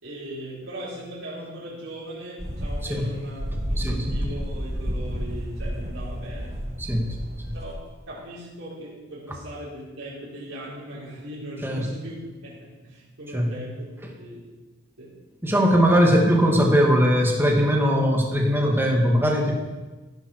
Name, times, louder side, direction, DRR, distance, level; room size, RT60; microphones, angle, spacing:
voice 1, 0.0-6.6 7.5-7.8 8.1-14.5 15.0-15.1, equal, 75° right, -9 dB, 4.4 m, -39 dB
sound 1, 2.4-7.8, equal, 35° right, 1.5 m, -31 dB
voice 2, 3.5-4.2 6.8-7.5 11.6-11.9 13.3-13.5 15.4-19.5, equal, 10° right, 0 dB, 2.1 m, -21 dB
15.5 x 11.5 x 4.9 m, 1.2 s
head